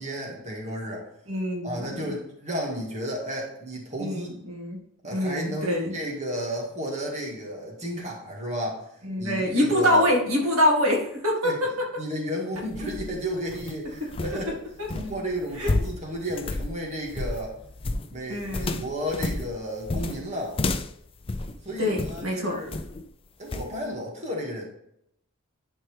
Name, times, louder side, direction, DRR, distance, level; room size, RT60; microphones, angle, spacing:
voice 1, 0.0-1.1 1.6-4.3 5.0-10.0 11.4-11.6 12.0-14.6 14.9-17.6 18.1-20.6 21.6-22.7 23.4-24.7, equal, 35° right, -2 dB, 2.0 m, -33 dB
voice 2, 1.3-2.0 4.0-4.8 5.1-5.9 9.0-11.5 15.6-15.7 18.3-18.8 21.8-22.6, left 1 dB, 85° right, -2 dB, 2.3 m, -25 dB
sound 1, 12.6-22.3 22.7-23.1 23.5-23.7, left 2 dB, 25° left, 0.5 m, -31 dB
11.0 x 4.5 x 3.4 m, 0.76 s
head